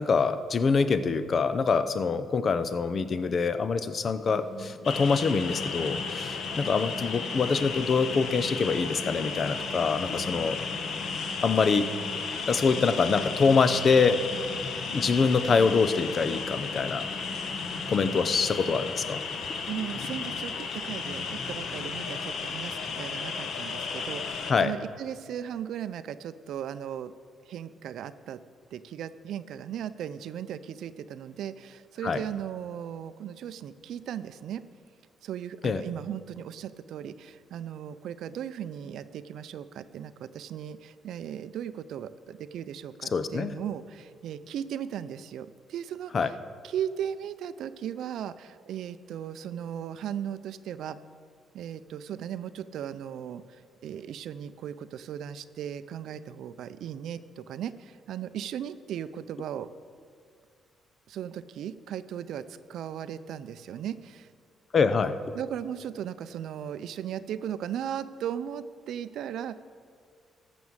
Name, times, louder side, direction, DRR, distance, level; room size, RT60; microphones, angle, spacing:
voice 1, 0.0-10.6 11.4-11.9 12.5-14.2 14.9-17.1 17.9-19.2 24.5-24.7 32.0-32.2 35.6-35.8 43.1-43.5 46.1-46.3 64.7-65.2, left 5 dB, 45° left, 12 dB, 0.7 m, -25 dB
sound 1, 4.2-19.6, equal, ahead, 2.0 m, -45 dB
sound 2, 4.8-24.5, left 5 dB, 65° left, 1.1 m, -34 dB
voice 2, 19.3-27.1 27.5-28.4 28.7-34.6 35.2-46.3 46.6-51.0 51.5-59.7 61.1-62.4 62.7-64.3 65.3-69.6, right 9 dB, 75° right, 14 dB, 0.4 m, -37 dB
14.5 x 6.2 x 7.2 m, 2.1 s
cardioid pair, 90°, 0 cm